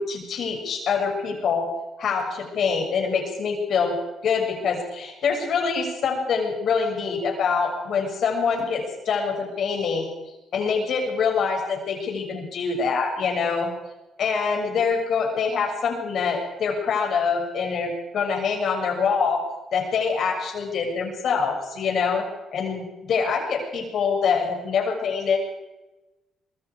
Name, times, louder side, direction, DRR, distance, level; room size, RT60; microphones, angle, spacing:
voice 1, 0.0-1.7 2.0-3.9 4.2-10.1 10.5-13.7 14.2-19.4 19.7-22.2 22.5-25.4, left 5 dB, 65° left, 2 dB, 6.8 m, -25 dB
25.0 x 22.5 x 4.9 m, 1.0 s
cardioid pair, 90°, 0 cm